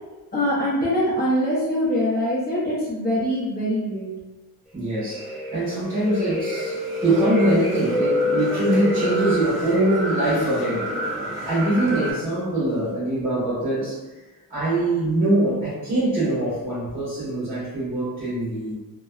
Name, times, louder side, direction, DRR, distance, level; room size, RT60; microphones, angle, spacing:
voice 1, 0.3-4.1, equal, 25° left, -8 dB, 0.7 m, -23 dB
voice 2, 4.7-10.9 11.4-14.0 14.5-18.7, right 1 dB, 25° right, -12 dB, 1.1 m, -23 dB
sound 1, 4.9-12.1, left 1 dB, ahead, 1.3 m, -27 dB
2.6 x 2.2 x 2.3 m, 1.1 s
cardioid pair, 145°, 35 cm